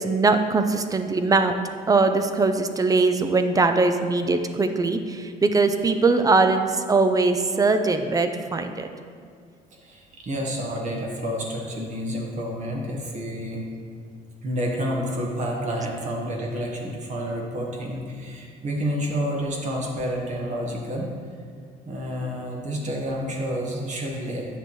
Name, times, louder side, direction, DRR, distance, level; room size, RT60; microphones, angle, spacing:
voice 1, 0.0-1.5 1.9-8.9, right 3 dB, 20° right, 8 dB, 0.5 m, -21 dB
voice 2, 9.7-13.7 14.4-21.1 21.9-24.6, equal, 45° right, -1 dB, 1.4 m, -29 dB
9.3 x 6.6 x 3.1 m, 2.1 s
cardioid pair, 110°, 17 cm